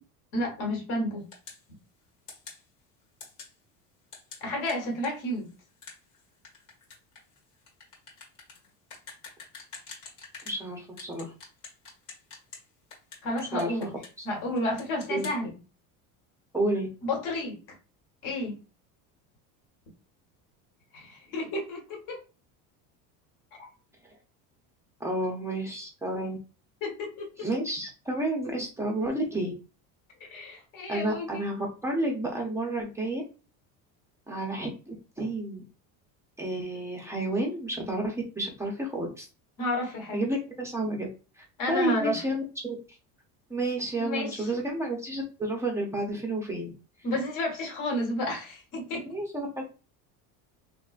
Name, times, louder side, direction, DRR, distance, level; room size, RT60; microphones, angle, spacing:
voice 1, 0.3-1.2 4.4-5.5 13.2-13.9 14.2-15.5 17.0-17.6 18.2-18.6 20.9-22.2 23.6-23.7 26.8-27.5 30.2-31.4 39.6-40.2 41.6-42.2 44.0-44.5 47.0-49.1, left 1 dB, 55° left, 1 dB, 1.3 m, -31 dB
sound 1, 1.3-1.6 2.3-2.6 3.2-3.5 4.1-10.6 11.0-12.6 12.9-14.3 14.6-15.4, left 4 dB, 85° left, 1.7 m, -46 dB
voice 2, 10.5-11.3 13.5-13.7 15.1-15.3 16.5-16.9 25.0-26.4 27.4-29.5 30.9-33.2 34.3-35.6 36.4-39.3 40.1-41.1 41.4-42.8 43.5-46.7 49.1-49.6, right 1 dB, 10° right, -1 dB, 0.4 m, -31 dB
3.5 x 3.1 x 2.3 m, 0.33 s
cardioid pair, 155°, 38 cm